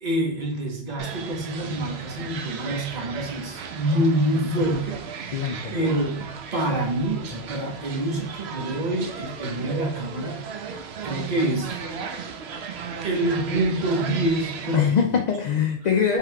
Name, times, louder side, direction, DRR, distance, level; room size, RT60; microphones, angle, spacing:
voice 1, 0.0-4.9 5.7-10.4 11.0-11.8 13.0-15.0, right 1 dB, 45° right, -1 dB, 1.1 m, -26 dB
sound 1, 1.0-14.8, right 6 dB, 75° right, 0.8 m, -36 dB
voice 2, 5.3-5.7 14.7-16.2, left 7 dB, 60° left, 2 dB, 0.5 m, -22 dB
4.6 x 3.6 x 2.2 m, 0.64 s
omnidirectional pair, 1.1 m